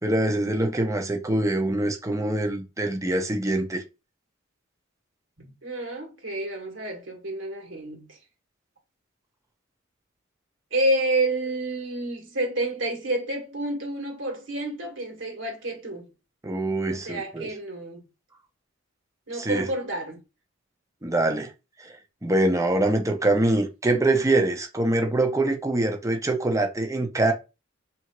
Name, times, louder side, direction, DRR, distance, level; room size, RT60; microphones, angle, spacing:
voice 1, 0.0-3.8 16.4-17.5 19.4-19.7 21.0-21.5 21.8-22.0 22.2-27.3, right 2 dB, 15° right, 0.8 m, -24 dB
voice 2, 5.4-8.2 10.7-16.1 16.9-18.0 19.3-20.2, right 1 dB, 70° right, 1.7 m, -29 dB
3.4 x 2.9 x 4.6 m
head